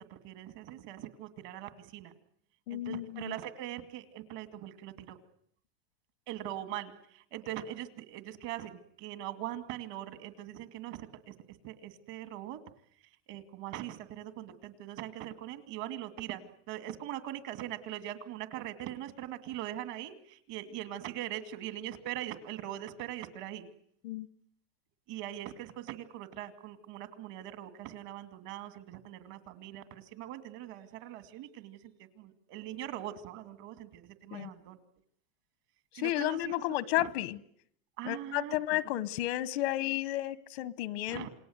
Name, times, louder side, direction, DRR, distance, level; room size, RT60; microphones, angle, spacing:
voice 1, 0.0-2.1 2.7-5.2 6.3-11.3 11.6-12.6 13.3-23.7 25.1-34.8 35.9-37.1 38.0-38.8 41.1-41.3, right 13 dB, 65° right, 10 dB, 2.4 m, -42 dB
voice 2, 2.7-3.3 24.0-24.3 34.3-34.5 35.9-37.4 38.0-41.3, left 16 dB, 90° left, 18 dB, 1.0 m, -32 dB
28.0 x 20.0 x 8.0 m, 0.67 s
supercardioid pair, 140°, 30 cm